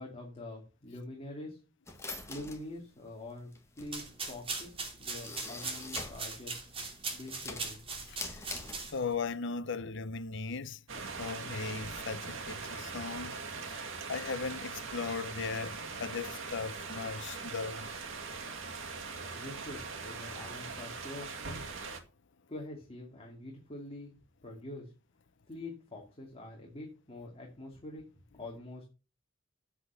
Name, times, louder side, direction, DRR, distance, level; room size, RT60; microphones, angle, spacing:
voice 1, 0.0-1.6 2.3-6.7 7.1-7.8 19.1-21.3 22.5-24.1 24.4-24.9 25.5-28.8, left 1 dB, 30° left, 2.5 m, -45 dB
sound 1, 1.9-6.3 6.7-9.3, left 3 dB, 15° left, 2.1 m, -44 dB
sound 2, 3.8-9.2, right 4 dB, 30° right, 2.7 m, -40 dB
voice 2, 8.1-8.6 8.9-10.8 11.2-13.8 14.1-17.9, left 4 dB, 65° left, 0.7 m, -38 dB
sound 3, 10.9-22.0, right 4 dB, 80° right, 2.2 m, -41 dB
8.3 x 7.6 x 6.8 m
head